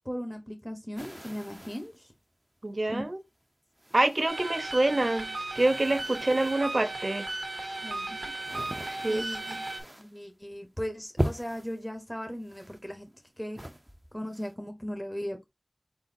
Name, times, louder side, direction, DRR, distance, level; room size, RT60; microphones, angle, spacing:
voice 1, 0.0-2.1 2.9-3.0 5.0-5.1 7.8-8.1 9.1-9.6 10.0-13.1 13.4-13.6 14.1-15.5, equal, 10° left, 0.9 m, -37 dB
sound 1, 1.0-2.0 2.7-2.8 3.8-4.6 4.9-6.8 7.5-10.2 10.5-10.8 11.2-11.8 12.4-13.2 13.5-14.5, equal, 15° right, 0.6 m, -39 dB
voice 2, 2.6-3.2 3.9-7.3 8.9-9.6, right 2 dB, 55° right, 0.7 m, -27 dB
sound 2, 4.3-9.8, right 2 dB, 85° right, 0.8 m, -36 dB
4.5 x 4.0 x 2.6 m
wide cardioid pair, 40°, 0 cm